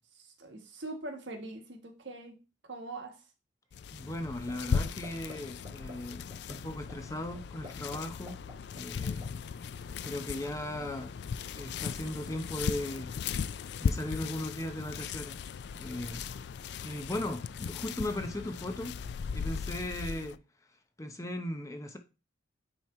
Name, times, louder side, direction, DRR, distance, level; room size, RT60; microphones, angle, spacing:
voice 1, 0.1-3.2, right 2 dB, 65° right, 1.4 m, -43 dB
sound 1, 3.7-20.4, left 6 dB, 60° left, 0.3 m, -37 dB
voice 2, 3.9-8.4 8.7-9.2 10.0-11.1 11.5-13.1 13.8-15.4 15.7-16.3 16.8-19.0 19.3-20.4 21.0-22.0, left 1 dB, 15° left, 0.7 m, -37 dB
sound 2, 4.5-4.8 5.0-5.3 5.6-5.9 6.3-6.5 6.9-7.0 7.3-8.0 8.3-9.2, left 2 dB, 20° right, 2.1 m, -46 dB
9.4 x 3.1 x 4.3 m
head